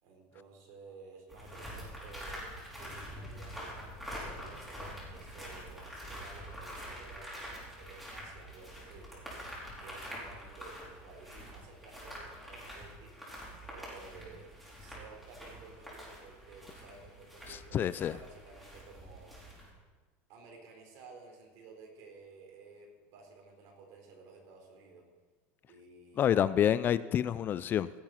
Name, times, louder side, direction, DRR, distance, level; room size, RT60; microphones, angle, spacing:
voice 1, 0.0-2.5 2.8-9.2 9.8-13.1 13.7-14.5 14.8-19.4 20.3-25.0 25.7-26.3, right 4 dB, 60° right, 1 dB, 4.2 m, -54 dB
sound 1, 1.3-19.7, equal, ahead, 4.6 m, -46 dB
voice 2, 17.7-18.1 26.2-27.9, left 10 dB, 35° left, 17 dB, 0.3 m, -27 dB
16.5 x 7.4 x 5.8 m, 1.3 s
supercardioid pair, 130°, 6 cm